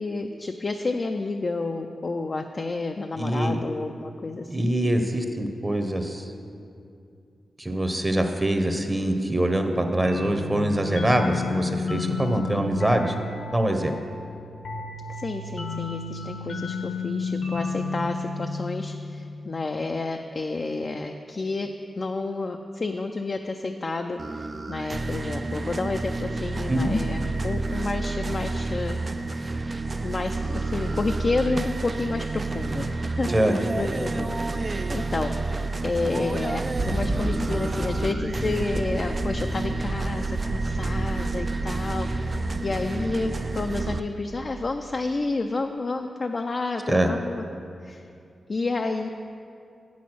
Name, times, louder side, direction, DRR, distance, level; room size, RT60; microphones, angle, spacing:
voice 1, 0.0-4.7 15.1-21.7 22.0-29.0 29.3-29.4 30.0-33.3 33.7-35.6 35.8-42.3 42.6-47.4 47.8-48.0 48.5-49.1, left 3 dB, 45° left, 4 dB, 0.4 m, -30 dB
voice 2, 3.1-3.6 4.5-6.3 7.6-13.1 13.5-13.9 26.7-26.9 33.3-33.5 46.9-47.1, right 1 dB, 20° right, 5 dB, 0.8 m, -24 dB
sound 1, 10.0-19.4, left 3 dB, 85° left, 1.3 m, -32 dB
sound 2, 24.2-44.0, right 3 dB, 40° right, 0.3 m, -30 dB
sound 3, 36.7-43.8, right 1 dB, 60° right, 1.5 m, -32 dB
8.1 x 6.2 x 6.1 m, 2.5 s
cardioid pair, 75°, 0 cm